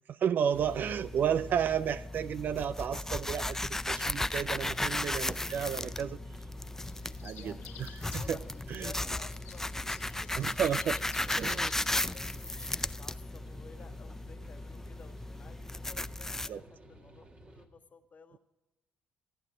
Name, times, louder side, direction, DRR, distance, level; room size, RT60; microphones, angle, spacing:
voice 1, 0.1-6.2 7.2-8.4 8.7-8.9 10.4-11.0 11.4-11.7 16.5-16.6, right 8 dB, 55° right, 16 dB, 0.4 m, -32 dB
sound 1, 0.5-16.5, left 2 dB, 10° left, 0.4 m, -36 dB
sound 2, 4.6-17.7, right 1 dB, 35° right, 1.7 m, -55 dB
sound 3, 6.8-12.9, left 9 dB, 80° left, 1.6 m, -54 dB
voice 2, 7.3-7.9 8.1-18.4, left 5 dB, 45° left, 8 dB, 1.4 m, -55 dB
14.5 x 8.9 x 5.0 m, 1.0 s
hypercardioid pair, 55°, 4 cm